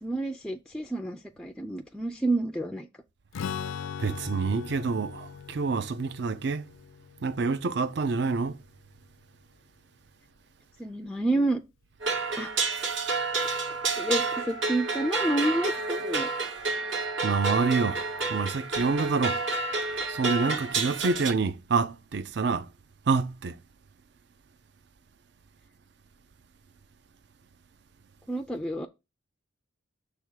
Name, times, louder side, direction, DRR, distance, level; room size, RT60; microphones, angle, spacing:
voice 1, 0.0-2.9 10.8-11.6 12.4-12.5 13.9-16.3 28.3-28.9, right 1 dB, 5° left, 0.3 m, -29 dB
Strum, 3.3-9.0, left 7 dB, 85° left, 0.4 m, -40 dB
voice 2, 4.0-6.6 7.2-8.6 17.2-18.0 18.3-19.4 20.1-22.7 23.1-23.6, right 4 dB, 55° right, 0.5 m, -27 dB
sound 1, 12.0-21.3, right 3 dB, 75° right, 2.0 m, -29 dB
6.5 x 3.5 x 6.1 m
head